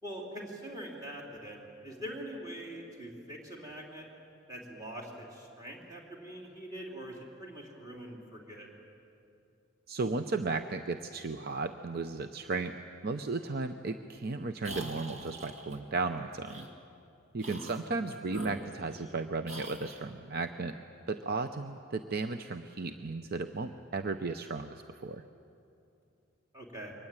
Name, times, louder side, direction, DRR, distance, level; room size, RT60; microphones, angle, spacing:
voice 1, 0.0-4.1 4.5-8.7 17.4-17.7 26.5-26.9, right 1 dB, 20° right, -1 dB, 3.2 m, -43 dB
voice 2, 9.9-12.7 13.0-16.7 17.3-20.8 21.1-25.2, right 3 dB, 50° right, 8 dB, 0.7 m, -35 dB
sound 1, 14.6-15.8 16.4-16.7 17.4-17.9 18.3-19.1 19.5-20.0, right 1 dB, 90° right, 2.3 m, -44 dB
23.5 x 19.5 x 9.0 m, 2.6 s
head